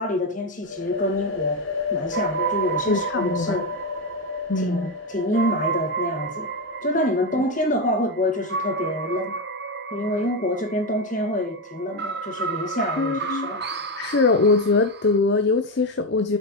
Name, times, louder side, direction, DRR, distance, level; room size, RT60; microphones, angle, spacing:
voice 1, 0.0-1.6 1.9-3.8 4.6-6.5 6.8-9.4 9.9-13.6, left 1 dB, 40° left, 1.9 m, -26 dB
sound 1, 0.6-8.3, left 5 dB, 85° left, 4.4 m, -33 dB
sound 2, 2.1-15.2, right 6 dB, 50° right, 1.1 m, -32 dB
voice 2, 2.9-3.6 4.5-4.9 7.3-7.4 13.0-13.5 14.0-16.4, left 3 dB, 55° left, 0.6 m, -22 dB
8.5 x 6.4 x 3.0 m
head